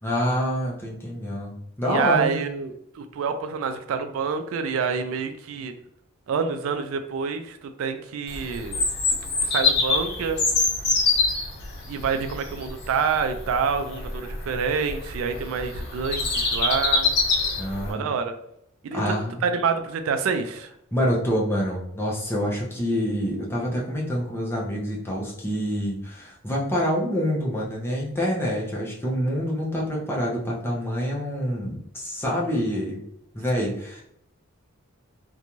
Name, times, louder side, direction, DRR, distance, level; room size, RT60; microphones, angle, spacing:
voice 1, 0.0-2.3 17.6-18.0 18.9-19.4 20.9-33.0 33.3-34.0, equal, 10° left, -3 dB, 0.6 m, -26 dB
voice 2, 1.8-5.7 6.3-8.8 9.2-10.4 11.9-17.1 17.9-18.3 18.8-19.2 19.4-20.7 33.5-33.8, right 5 dB, 70° right, 8 dB, 0.3 m, -27 dB
Bird vocalization bird call bird song, 8.3-17.9, left 3 dB, 50° left, 0.8 m, -25 dB
2.5 x 2.2 x 2.9 m, 0.75 s
head